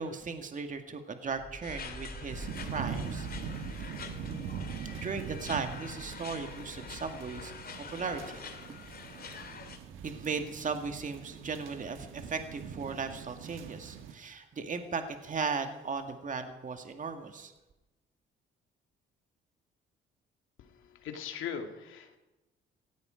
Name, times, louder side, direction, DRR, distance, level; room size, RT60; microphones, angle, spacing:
voice 1, 0.0-3.3 3.8-3.9 4.9-7.5 7.8-8.4 10.0-17.5, right 5 dB, 40° right, 7 dB, 2.0 m, -37 dB
sound 1, 1.3-7.3, equal, 15° right, 3.4 m, -47 dB
sound 2, 1.6-9.8, left 6 dB, 50° left, 2.4 m, -46 dB
sound 3, 2.3-14.1, right 7 dB, 85° right, 1.4 m, -43 dB
voice 2, 21.0-22.2, left 7 dB, 85° left, 5 dB, 2.5 m, -39 dB
17.5 x 16.0 x 5.1 m, 1.0 s
cardioid pair, 90°, 20 cm